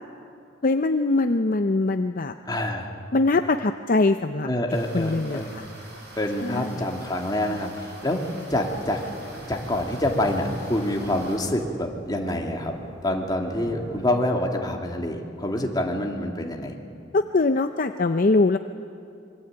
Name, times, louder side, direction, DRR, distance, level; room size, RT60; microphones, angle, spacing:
voice 1, 0.6-2.3 3.1-4.5 4.9-5.7 6.4-6.8 17.1-18.6, left 3 dB, 45° left, 8 dB, 0.7 m, -22 dB
voice 2, 2.5-2.9 4.4-5.6 6.2-9.0 9.5-12.7 13.0-16.8, left 1 dB, 20° left, 1 dB, 2.6 m, -26 dB
sound 1, 4.7-11.4, right 1 dB, 55° right, 6.8 m, -45 dB
sound 2, 8.5-14.1, right 1 dB, 20° right, 3.1 m, -40 dB
25.5 x 23.0 x 9.0 m, 2.5 s
head